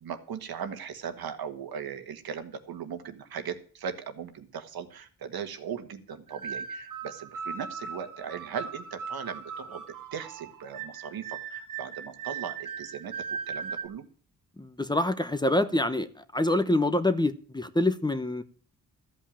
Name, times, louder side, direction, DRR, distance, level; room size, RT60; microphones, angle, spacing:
voice 1, 0.0-9.8 10.1-14.0, right 7 dB, 80° right, 8 dB, 1.6 m, -38 dB
sound 1, 6.3-13.8, right 6 dB, 60° right, 1.5 m, -38 dB
voice 2, 14.6-16.1 16.3-18.4, left 1 dB, 10° left, 11 dB, 0.9 m, -26 dB
14.0 x 5.5 x 8.8 m, 0.44 s
cardioid pair, 95°, 36 cm